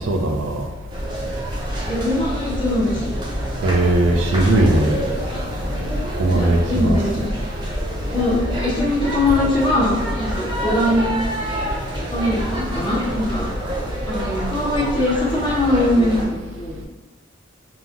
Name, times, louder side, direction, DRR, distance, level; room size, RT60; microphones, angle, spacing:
voice 1, 0.1-0.7 3.6-5.1 6.1-7.0, right 2 dB, 85° right, 3 dB, 0.4 m, -18 dB
sound 1, 0.9-16.2, equal, 25° right, 0.6 m, -26 dB
voice 2, 1.9-3.1 6.3-7.3 8.1-8.4 8.6-11.1 12.1-13.5 14.1-16.8, left 1 dB, 25° left, -6 dB, 0.8 m, -21 dB
2.9 x 2.3 x 2.5 m, 1.2 s
head